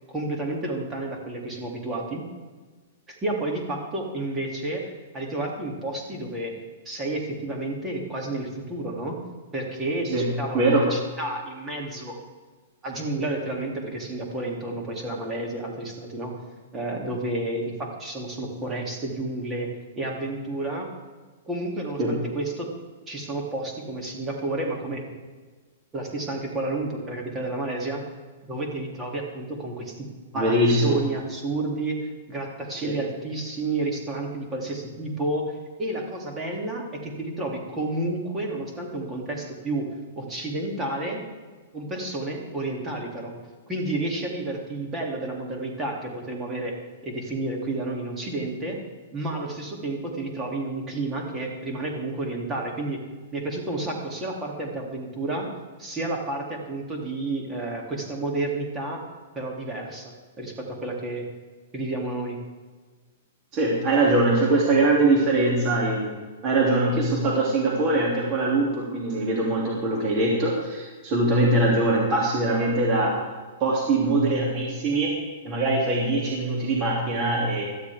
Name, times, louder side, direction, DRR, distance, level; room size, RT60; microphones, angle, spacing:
voice 1, 0.1-2.2 3.1-6.5 6.8-9.2 9.5-12.2 12.8-16.3 16.7-19.7 20.0-20.9 21.5-22.7 23.1-25.0 25.9-28.0 28.4-39.9 40.2-41.2 41.7-43.3 43.7-46.7 47.0-48.8 49.1-53.0 53.3-55.5 55.8-59.0 59.3-61.3 61.7-62.4, right 2 dB, 15° right, -1 dB, 2.7 m, -31 dB
voice 2, 10.5-10.9 22.0-22.1 30.3-31.0 32.8-33.0 63.5-66.1 66.4-73.2 73.6-75.1 75.4-77.6, right 2 dB, 30° right, -3 dB, 2.7 m, -22 dB
17.5 x 13.0 x 3.6 m, 1.4 s
hypercardioid pair, 150°, 0 cm